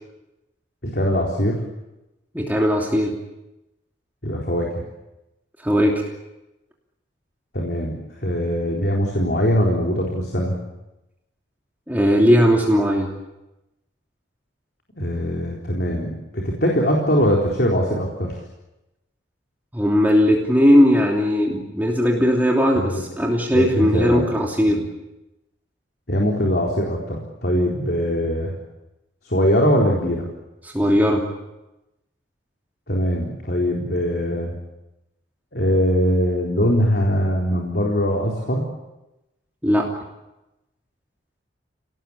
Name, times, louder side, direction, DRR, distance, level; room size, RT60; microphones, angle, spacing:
voice 1, 0.8-1.6 4.2-4.7 7.5-10.6 15.0-18.4 22.8-23.0 23.5-24.3 24.7-24.8 26.1-28.5 29.2-30.3 32.9-34.6 35.5-38.6, equal, 55° left, -1 dB, 4.1 m, -21 dB
voice 2, 2.3-3.1 5.6-6.0 11.9-13.1 19.7-24.8 30.6-31.2 39.6-39.9, equal, 10° right, -1 dB, 3.0 m, -18 dB
29.0 x 19.0 x 8.8 m, 0.98 s
head